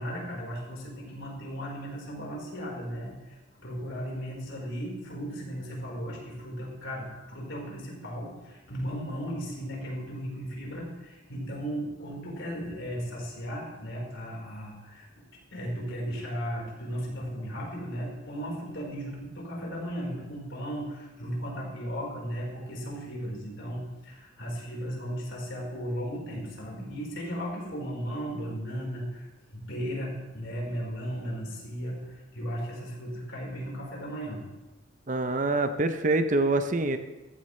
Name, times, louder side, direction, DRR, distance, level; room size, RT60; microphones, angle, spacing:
voice 1, 0.0-15.1 15.3-34.4, equal, 70° left, -2 dB, 4.2 m, -36 dB
voice 2, 35.1-37.0, right 2 dB, 40° right, 9 dB, 0.6 m, -25 dB
15.0 x 14.0 x 3.2 m, 1.1 s
head